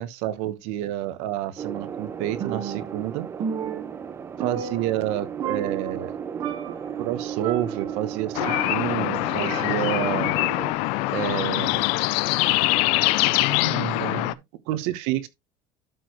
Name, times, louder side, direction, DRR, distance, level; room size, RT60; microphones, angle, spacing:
voice 1, 0.0-3.3 4.4-6.1 7.0-10.4 11.1-11.9 13.5-14.4 14.7-15.3, right 13 dB, 80° right, 1.1 m, -29 dB
sound 1, 1.6-10.7, right 7 dB, 25° right, 0.7 m, -35 dB
Percussion, 2.4-3.1 3.4-5.2 5.4-6.1 6.4-6.9 7.4-9.0 9.4-10.1, right 7 dB, 45° right, 1.1 m, -33 dB
sound 2, 8.3-14.3, left 20 dB, 80° left, 0.5 m, -23 dB
12.5 x 4.7 x 3.0 m
cardioid pair, 155°, 10 cm